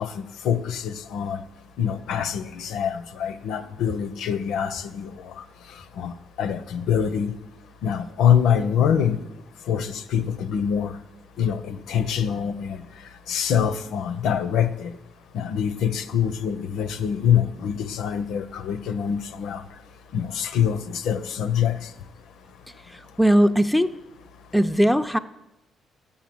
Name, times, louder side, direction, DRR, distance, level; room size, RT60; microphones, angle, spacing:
voice 1, 0.0-1.4 1.8-5.3 6.0-7.3 7.8-9.2 9.7-10.9 11.4-12.8 13.3-14.9 15.3-19.6 20.1-21.8, left 8 dB, 85° left, 0.5 m, -25 dB
voice 2, 22.9-23.9 24.5-25.2, equal, ahead, 0.4 m, -19 dB
7.1 x 6.9 x 7.6 m
cardioid pair, 90°, 0 cm